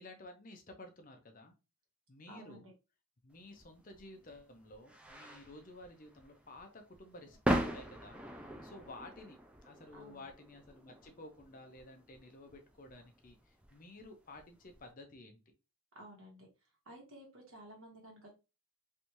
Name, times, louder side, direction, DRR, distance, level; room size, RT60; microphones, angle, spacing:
voice 1, 0.0-1.5 2.1-2.7 3.2-8.2 8.6-9.4 9.6-15.4, left 2 dB, 40° left, 5 dB, 0.6 m, -53 dB
voice 2, 2.3-2.6 9.9-10.2 15.9-16.5 16.8-18.3, right 1 dB, 70° right, 0 dB, 1.4 m, -53 dB
sound 1, 3.5-14.8, right 1 dB, 5° right, 0.3 m, -41 dB
3.3 x 2.6 x 2.9 m, 0.29 s
head